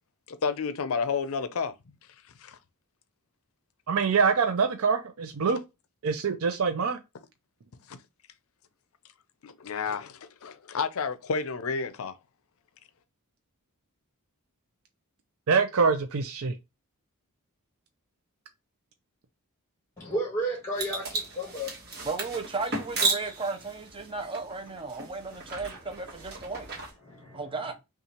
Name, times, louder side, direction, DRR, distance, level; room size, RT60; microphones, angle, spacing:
voice 1, 0.3-1.7 2.4-2.6 7.9-8.0 9.4-12.2, left 5 dB, 65° left, 0.5 m, -31 dB
voice 2, 3.9-5.6 6.0-7.0 15.5-16.5, right 5 dB, 65° right, 0.5 m, -25 dB
voice 3, 20.0-21.7 27.0-27.4, right 1 dB, 15° left, 1.1 m, -32 dB
sound 1, 20.8-26.9, right 3 dB, 45° right, 1.2 m, -34 dB
voice 4, 22.0-26.7 27.3-27.7, right 3 dB, 25° right, 0.6 m, -35 dB
5.5 x 2.4 x 2.8 m
head